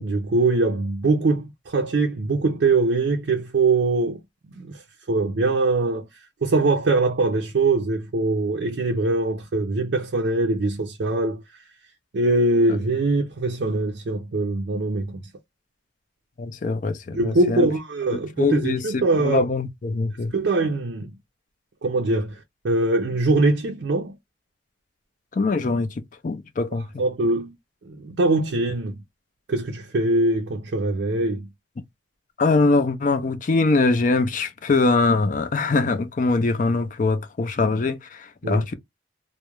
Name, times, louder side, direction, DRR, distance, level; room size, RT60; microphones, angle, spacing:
voice 1, 0.0-4.2 4.5-4.8 5.1-6.1 6.4-11.4 12.1-15.2 17.1-19.4 20.3-21.1 21.8-22.4 22.6-24.1 26.7-27.6 27.8-29.0 29.5-31.5 38.4-38.7, right 2 dB, 60° right, 0.4 m, -22 dB
voice 2, 16.4-17.7 18.4-20.3 25.4-25.9 26.2-26.9 32.4-38.7, left 3 dB, 40° left, 0.4 m, -22 dB
2.3 x 2.1 x 2.9 m
head